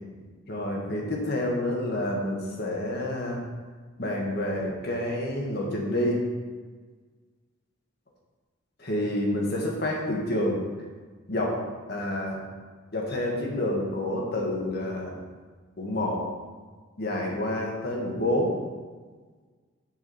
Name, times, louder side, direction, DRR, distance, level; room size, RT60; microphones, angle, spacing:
voice 1, 0.0-3.4 4.0-6.2 8.8-10.6 11.3-11.6 11.9-12.4 12.9-15.2 15.8-16.2 17.0-18.5, left 1 dB, 50° left, -1 dB, 1.7 m, -28 dB
7.4 x 4.8 x 7.0 m, 1.4 s
head